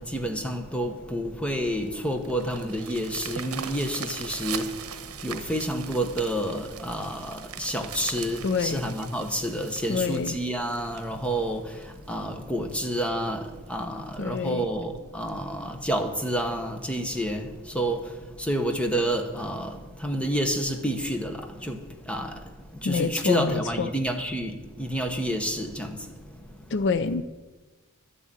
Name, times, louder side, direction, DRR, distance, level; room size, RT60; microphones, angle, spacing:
voice 1, 0.0-4.7 5.2-11.7 12.1-18.0 18.4-21.8 22.1-22.4 22.8-26.0, equal, 5° left, 1.0 m, -29 dB
sound 1, 1.6-12.1 12.7-12.8 13.2-13.3 13.7-13.8 14.1-14.4 15.3-15.4, right 8 dB, 80° right, 1.0 m, -40 dB
voice 2, 8.4-8.8 9.9-10.4 14.2-14.7 22.8-23.9 26.7-27.2, left 5 dB, 50° left, 0.4 m, -26 dB
12.5 x 6.4 x 8.9 m
head